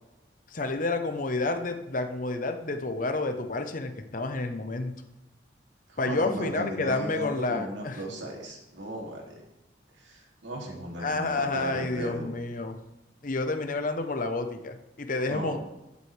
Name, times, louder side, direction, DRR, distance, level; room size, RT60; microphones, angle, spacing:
voice 1, 0.5-4.9 6.0-8.0 11.0-12.8 13.2-15.6, left 2 dB, 45° left, 7 dB, 0.8 m, -30 dB
voice 2, 5.9-9.4 10.0-12.3 15.3-15.6, equal, 80° right, -1 dB, 2.6 m, -36 dB
12.5 x 8.2 x 3.3 m, 0.99 s
head